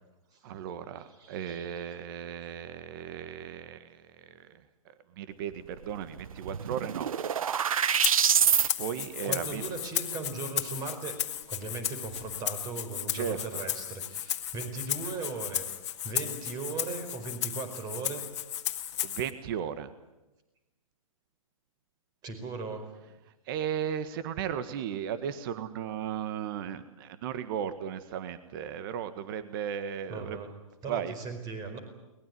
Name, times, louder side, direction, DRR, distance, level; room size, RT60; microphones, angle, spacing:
voice 1, 0.4-4.6 5.2-7.1 8.8-9.6 13.1-13.6 19.0-19.9 23.5-30.4 30.9-31.2, right 8 dB, 40° right, 11 dB, 1.7 m, -35 dB
voice 2, 1.0-2.0 9.2-11.2 11.5-15.7 16.0-18.3 22.2-22.9 30.1-30.5 30.8-31.8, right 4 dB, 20° right, 8 dB, 4.8 m, -38 dB
sound 1, 5.8-5.9 6.2-8.7, right 8 dB, 75° right, 0.9 m, -26 dB
Rattle (instrument), 8.0-19.3, left 10 dB, 55° left, 1.8 m, -34 dB
23.0 x 20.5 x 9.5 m, 1.0 s
hypercardioid pair, 145°, 18 cm